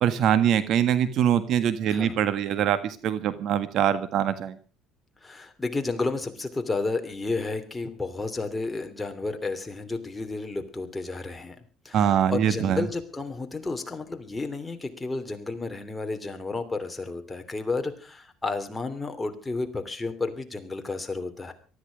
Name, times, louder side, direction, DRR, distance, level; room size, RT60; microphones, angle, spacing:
voice 1, 0.0-4.6 11.9-12.9, right 9 dB, 60° right, 12 dB, 1.6 m, -23 dB
voice 2, 1.9-2.2 5.2-11.6 11.8-21.5, left 3 dB, 15° left, 6 dB, 2.9 m, -32 dB
19.0 x 13.5 x 5.2 m, 0.38 s
cardioid pair, 105°, 0 cm